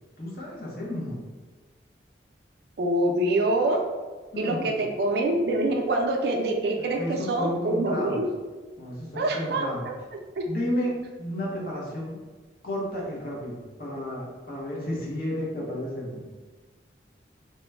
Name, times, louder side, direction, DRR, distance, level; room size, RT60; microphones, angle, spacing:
voice 1, 0.2-1.2 4.3-4.8 6.8-8.2 8.8-9.9 10.5-12.2 12.6-16.3, equal, 55° left, -4 dB, 0.8 m, -32 dB
voice 2, 2.8-3.8 4.4-8.3 9.2-9.6 10.4-10.5, right 1 dB, 60° right, 2 dB, 0.4 m, -25 dB
2.9 x 2.1 x 3.3 m, 1.3 s
head